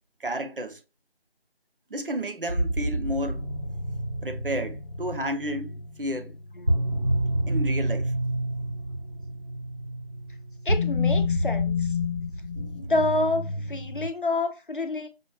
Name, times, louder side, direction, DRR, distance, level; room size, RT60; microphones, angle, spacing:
voice 1, 0.2-0.8 1.9-3.4 4.2-6.3 7.5-8.1, right 1 dB, 60° right, 0.6 m, -31 dB
sound 1, 2.5-14.1, left 1 dB, 40° right, 1.1 m, -28 dB
voice 2, 10.6-11.9 12.8-15.1, left 2 dB, 55° left, 0.7 m, -28 dB
5.6 x 2.3 x 3.0 m
figure-of-eight pair, 175°, 31 cm